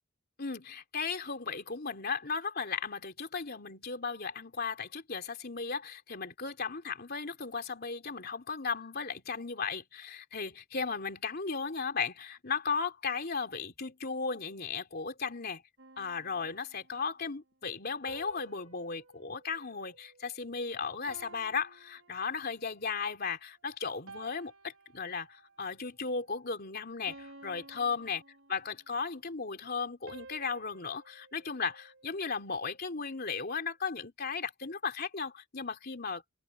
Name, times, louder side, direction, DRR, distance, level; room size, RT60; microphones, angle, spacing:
voice 1, 0.4-15.6 16.0-28.2 28.5-36.2, left 5 dB, 50° left, 3.4 m, -36 dB
sound 1, 15.8-17.1 18.1-20.6 21.1-22.8 23.3-23.6 24.1-25.6 26.1-26.4 27.1-29.0 30.1-32.4, right 3 dB, 85° right, 4.6 m, -54 dB
open air
head